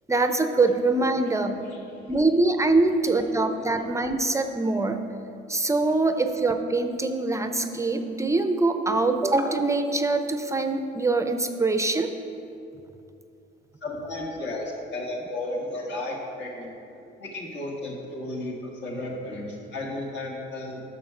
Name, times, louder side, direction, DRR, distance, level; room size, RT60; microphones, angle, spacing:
voice 1, 0.1-1.6 2.1-5.0 5.5-12.1, right 3 dB, 15° right, 7 dB, 0.5 m, -23 dB
voice 2, 13.8-16.7 17.2-20.8, left 1 dB, 60° left, -1 dB, 2.0 m, -34 dB
7.4 x 6.3 x 5.8 m, 2.8 s
cardioid pair, 100°, 20 cm